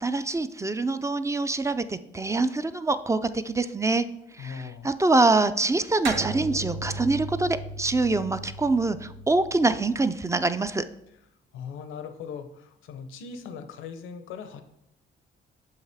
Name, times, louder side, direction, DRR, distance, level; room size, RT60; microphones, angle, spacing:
voice 1, 0.0-4.1 4.4-10.8, right 3 dB, 15° right, 12 dB, 0.3 m, -25 dB
voice 2, 4.4-4.9 11.5-14.6, left 6 dB, 85° left, 8 dB, 0.7 m, -39 dB
sound 1, 6.1-10.8, right 2 dB, 80° right, 1.0 m, -37 dB
6.5 x 5.5 x 3.4 m, 0.81 s
cardioid pair, 90°, 20 cm